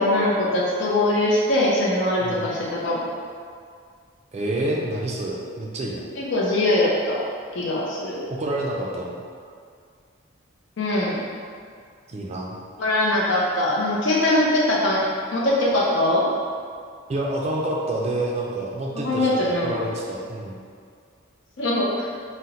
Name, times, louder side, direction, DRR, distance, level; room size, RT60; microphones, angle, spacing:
voice 1, 0.0-3.0 6.2-7.2 7.5-8.2 10.8-11.2 12.8-15.0 15.3-16.2 18.9-19.7 21.6-22.1, left 1 dB, 60° left, -5 dB, 0.5 m, -22 dB
voice 2, 4.3-6.0 8.3-9.2 12.1-12.5 17.1-20.6, right 1 dB, 30° right, -2 dB, 0.3 m, -28 dB
2.8 x 2.0 x 3.8 m, 2.2 s
head